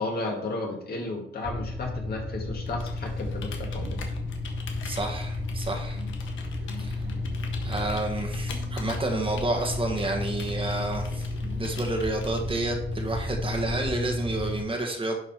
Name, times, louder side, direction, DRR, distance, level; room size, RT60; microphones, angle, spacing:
voice 1, 0.0-4.1, left 2 dB, 50° left, 0 dB, 2.2 m, -33 dB
sound 1, 1.4-14.6, left 2 dB, ahead, 1.9 m, -32 dB
Computer keyboard, 2.6-12.9, left 6 dB, 75° left, 1.4 m, -45 dB
voice 2, 4.8-6.0 6.8-6.9 7.6-11.3 11.5-15.2, right 2 dB, 25° right, 2 dB, 1.5 m, -30 dB
sound 2, 5.9-13.0, right 3 dB, 80° right, 3.1 m, -49 dB
10.5 x 3.8 x 4.5 m, 0.70 s
cardioid pair, 90°, 20 cm